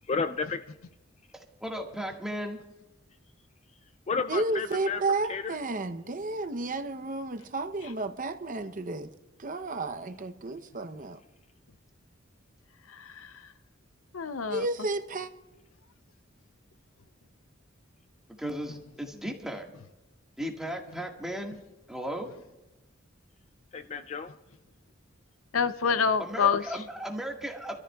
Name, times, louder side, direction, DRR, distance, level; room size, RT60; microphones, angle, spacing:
voice 1, 0.0-0.6 4.1-5.0 5.3-5.6 23.7-24.3, left 4 dB, 30° left, 0.4 m, -31 dB
voice 2, 1.6-2.6 18.4-19.7 20.4-21.6 21.9-22.4 26.2-27.7, equal, 5° right, 1.7 m, -35 dB
voice 3, 4.3-9.1 9.4-11.2 14.5-15.3, right 2 dB, 40° right, 0.8 m, -32 dB
voice 4, 12.9-13.5 14.1-14.7 25.5-26.6, left 6 dB, 85° left, 0.6 m, -27 dB
29.0 x 13.5 x 2.4 m
head